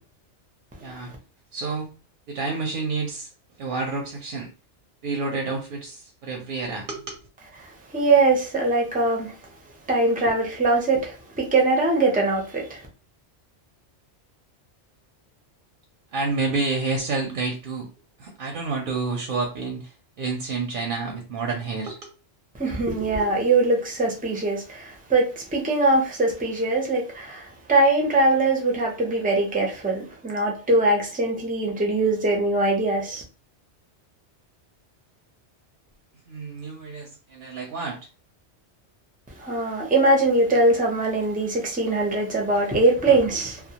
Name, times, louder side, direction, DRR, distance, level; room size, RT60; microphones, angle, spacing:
voice 1, 1.5-1.9 2.3-3.3 3.6-4.5 5.0-7.2 16.1-17.9 18.2-19.9 20.2-22.1 36.3-38.0, right 3 dB, 60° right, 0.6 m, -29 dB
voice 2, 7.6-9.3 9.9-12.8 22.6-33.2 39.4-43.6, right 2 dB, 15° right, 0.3 m, -22 dB
2.2 x 2.1 x 2.8 m
omnidirectional pair, 1.2 m